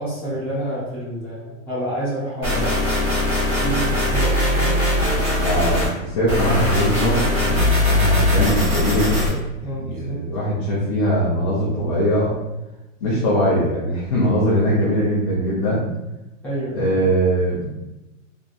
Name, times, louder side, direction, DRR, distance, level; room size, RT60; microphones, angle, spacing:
voice 1, 0.0-2.8 3.6-4.8 9.6-10.2 16.4-16.9, right 1 dB, 5° left, -12 dB, 1.0 m, -28 dB
sound 1, 2.4-5.9 6.3-9.3, left 1 dB, 20° right, 1.2 m, -20 dB
voice 2, 5.4-9.4 9.7-12.4 13.0-15.8 16.7-17.7, equal, 25° left, -8 dB, 0.4 m, -21 dB
3.8 x 2.9 x 2.4 m, 0.98 s
supercardioid pair, 180°, 40 cm